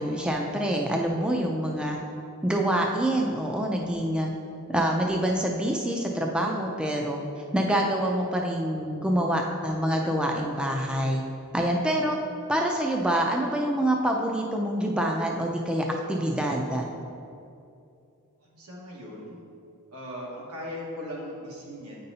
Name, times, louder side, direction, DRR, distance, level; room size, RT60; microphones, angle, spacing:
voice 1, 0.0-2.0 2.4-4.3 4.7-7.2 7.5-11.2 11.5-12.2 12.5-16.8, right 1 dB, 5° right, 0 dB, 0.4 m, -26 dB
voice 2, 18.4-19.4 19.9-22.0, left 1 dB, 90° right, -4 dB, 1.5 m, -38 dB
8.4 x 5.3 x 2.8 m, 2.5 s
head